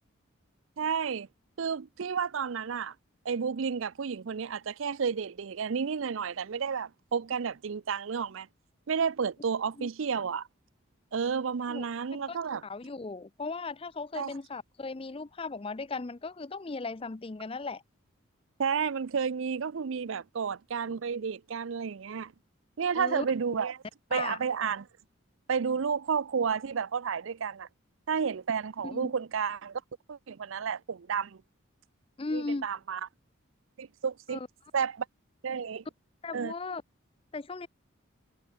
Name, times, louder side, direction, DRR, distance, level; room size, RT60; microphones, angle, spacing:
voice 1, 0.8-1.3 1.6-2.9 3.2-8.5 8.9-10.5 11.1-12.6 14.1-14.3 18.6-22.3 22.8-23.8 24.1-24.9 25.5-27.7 28.1-29.8 30.1-31.4 32.3-33.0 33.8-34.4 34.7-35.1 35.4-35.8 36.3-36.5, right 6 dB, 70° right, 0.5 m, -31 dB
voice 2, 12.6-17.8 23.0-23.3 24.1-24.4 28.8-29.1 32.2-32.7 34.3-34.5 36.2-36.8 37.3-37.7, left 3 dB, 25° left, 0.5 m, -37 dB
head